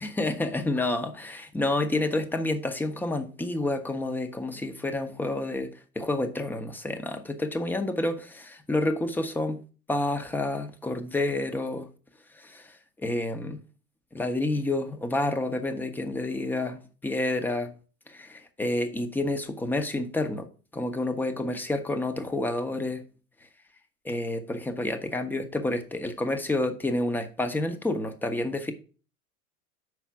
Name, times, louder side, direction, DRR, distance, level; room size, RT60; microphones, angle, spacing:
voice 1, 0.0-9.6 9.9-11.9 12.3-13.6 14.1-17.7 18.1-20.5 20.7-23.0 24.0-28.7, left 2 dB, 5° left, 0.5 m, -29 dB
5.6 x 4.7 x 6.0 m
figure-of-eight pair, 90°, 45 cm